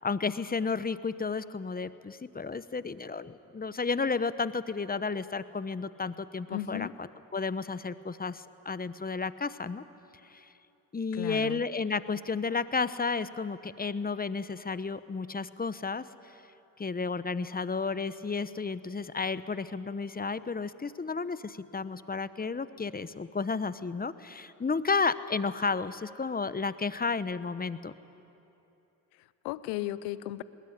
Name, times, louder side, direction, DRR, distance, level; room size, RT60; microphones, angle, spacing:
voice 1, 0.0-7.1 7.3-9.8 10.2-10.5 10.9-16.0 16.8-27.9, left 4 dB, 25° left, 14 dB, 0.9 m, -32 dB
voice 2, 6.5-6.9 11.1-11.6 29.2-30.4, left 15 dB, 90° left, 16 dB, 0.6 m, -35 dB
20.0 x 19.5 x 9.9 m, 2.9 s
supercardioid pair, 60°, 39 cm